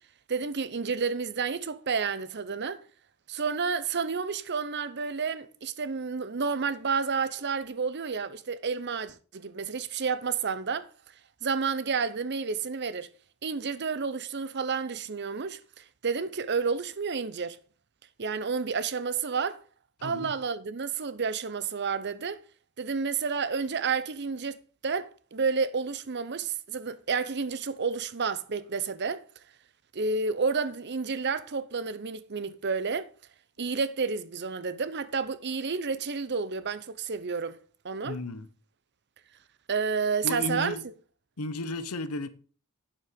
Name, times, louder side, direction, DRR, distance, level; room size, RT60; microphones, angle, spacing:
voice 1, 0.3-2.8 3.3-10.9 11.4-13.1 13.4-17.6 18.2-19.6 20.0-22.4 22.8-24.6 24.8-29.2 29.9-33.1 33.6-37.6 37.8-38.2 39.7-40.7, right 5 dB, 50° right, 0.7 m, -30 dB
voice 2, 20.0-20.3 38.0-38.5 40.2-40.9 41.4-42.3, left 2 dB, 90° left, 1.0 m, -34 dB
8.9 x 7.2 x 5.2 m
head